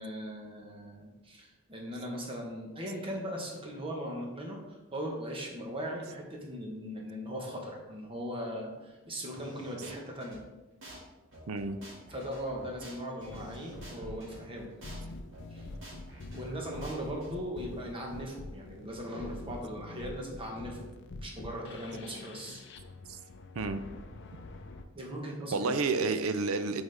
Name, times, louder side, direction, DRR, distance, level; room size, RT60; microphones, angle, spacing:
voice 1, 0.0-10.4 12.1-14.7 15.5-15.7 16.3-20.8 21.2-22.6 24.9-26.1, equal, 25° right, -1 dB, 1.1 m, -39 dB
sound 1, 9.3-10.4 10.8-11.0 11.3-14.4 14.8-15.0 15.3-17.3, right 1 dB, 60° right, 1.9 m, -50 dB
voice 2, 11.5-11.8 23.1-23.2 23.6-23.8 25.5-26.8, right 4 dB, 80° right, 11 dB, 0.5 m, -30 dB
sound 2, 13.3-24.8, left 2 dB, 55° left, 0.5 m, -46 dB
7.9 x 4.1 x 3.4 m, 1.1 s
head